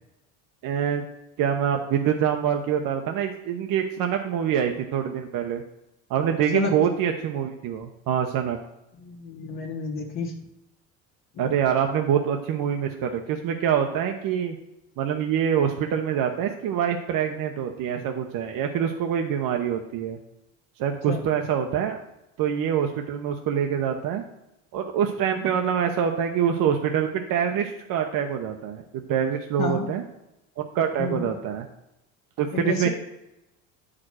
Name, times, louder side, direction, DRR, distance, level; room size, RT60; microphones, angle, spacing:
voice 1, 0.6-1.0 1.4-5.6 6.1-8.6 11.4-14.6 15.0-20.2 20.8-22.0 22.4-24.2 24.7-28.8 29.1-30.0 30.6-31.7 32.4-32.9, right 8 dB, 60° right, 4 dB, 1.0 m, -25 dB
voice 2, 9.0-10.3 11.4-11.5 21.1-21.2 29.6-29.9 31.0-31.3 32.5-32.9, left 4 dB, 50° left, -2 dB, 1.5 m, -30 dB
8.4 x 5.0 x 6.3 m, 0.89 s
supercardioid pair, 95°, 38 cm